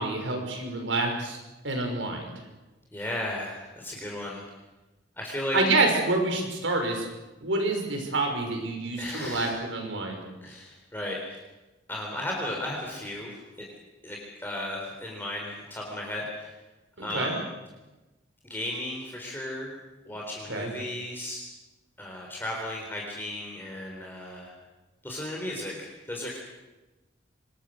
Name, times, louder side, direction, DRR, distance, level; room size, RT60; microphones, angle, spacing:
voice 1, 0.0-1.4 1.6-2.4 5.5-7.1 7.4-10.2 17.0-17.3 20.5-20.7, right 2 dB, 75° right, 3 dB, 6.0 m, -27 dB
voice 2, 2.9-4.4 5.2-5.6 9.0-9.6 10.4-11.4 11.9-13.6 14.0-16.6 17.0-17.4 18.5-19.7 20.1-21.4 22.0-24.5 25.0-26.4, left 1 dB, 10° left, -2 dB, 3.9 m, -35 dB
25.5 x 22.0 x 6.5 m, 1.1 s
head